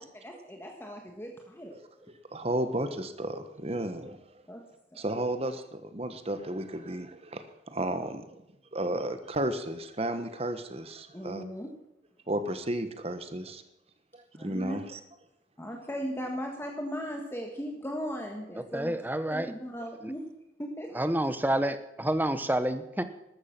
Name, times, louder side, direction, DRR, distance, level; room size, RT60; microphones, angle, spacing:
voice 1, 0.2-1.8 4.5-4.6 4.9-5.0 11.1-11.7 14.3-14.8 15.6-18.9 19.3-20.2 20.6-21.0, equal, 15° left, 1 dB, 1.4 m, -37 dB
voice 2, 2.3-4.2 5.0-8.2 8.7-11.4 12.3-13.6 14.4-15.0, right 1 dB, 35° right, 9 dB, 1.3 m, -33 dB
voice 3, 18.7-19.5 20.9-23.0, right 1 dB, 10° right, 11 dB, 0.9 m, -28 dB
13.5 x 12.5 x 5.9 m, 0.88 s
head